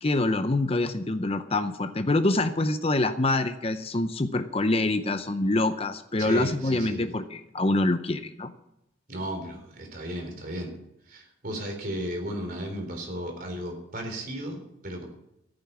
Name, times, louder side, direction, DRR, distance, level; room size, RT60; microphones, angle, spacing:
voice 1, 0.0-8.5, left 2 dB, 30° left, 10 dB, 0.7 m, -25 dB
voice 2, 6.2-7.0 9.1-10.7 11.1-15.1, right 1 dB, 45° right, 3 dB, 3.6 m, -34 dB
14.0 x 8.9 x 7.1 m, 0.82 s
head